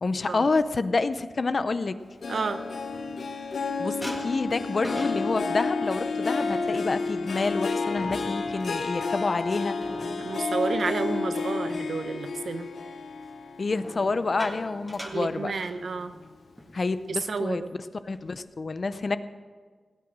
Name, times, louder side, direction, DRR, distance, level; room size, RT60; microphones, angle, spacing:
voice 1, 0.0-2.0 3.8-9.8 13.6-15.5 16.7-17.6 18.0-19.2, left 3 dB, 50° left, 13 dB, 0.6 m, -28 dB
sound 1, 2.1-3.6 4.0-11.8 12.2-12.5 13.7-16.3 16.6-16.8 17.1-17.4 17.9-18.5, equal, ahead, 1.9 m, -44 dB
Harp, 2.2-14.9 15.4-15.8 16.2-16.3, left 4 dB, 80° left, 0.9 m, -31 dB
voice 2, 2.3-2.6 10.2-12.7 15.1-16.1 17.3-17.6, right 4 dB, 75° right, 9 dB, 0.9 m, -30 dB
17.0 x 8.7 x 6.1 m, 1.5 s
wide cardioid pair, 100°, 0 cm